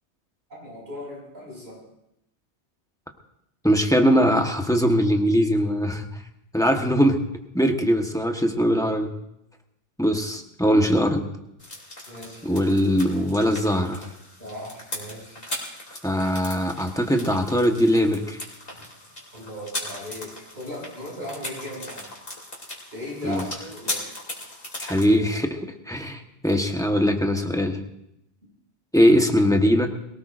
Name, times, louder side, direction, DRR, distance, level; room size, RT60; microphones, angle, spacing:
voice 1, 0.5-1.8 12.1-12.5 14.4-15.4 19.3-22.1 22.9-24.0, left 1 dB, 75° right, -3 dB, 6.8 m, -37 dB
voice 2, 3.6-6.1 6.5-7.2 7.5-9.1 10.0-11.2 12.4-14.0 16.0-18.4 23.2-23.4 24.8-27.8 28.9-29.9, equal, 5° left, 3 dB, 1.1 m, -21 dB
sound 1, 11.6-25.1, left 1 dB, 60° left, 3.3 m, -38 dB
23.0 x 17.5 x 2.6 m, 0.81 s
omnidirectional pair, 1.1 m